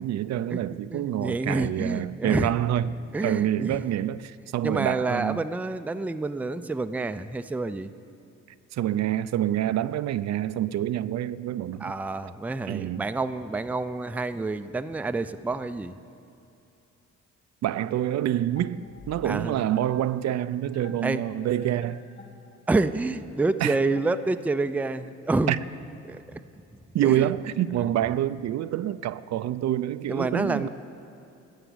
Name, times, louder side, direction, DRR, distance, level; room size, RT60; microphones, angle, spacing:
voice 1, 0.0-2.9 3.2-5.4 8.7-11.9 12.7-13.1 17.6-22.0 23.6-23.8 25.5-25.6 26.9-30.7, right 12 dB, 60° right, 0.5 m, -27 dB
voice 2, 0.9-2.5 3.1-3.8 4.6-7.9 11.8-16.0 19.2-19.6 21.0-21.2 22.7-25.6 26.1-26.4 27.0-27.3 30.1-30.7, right 3 dB, 5° right, 0.4 m, -28 dB
sound 1, 18.5-24.7, left 3 dB, 40° left, 2.6 m, -50 dB
13.0 x 8.1 x 9.7 m
cardioid pair, 90°, 30 cm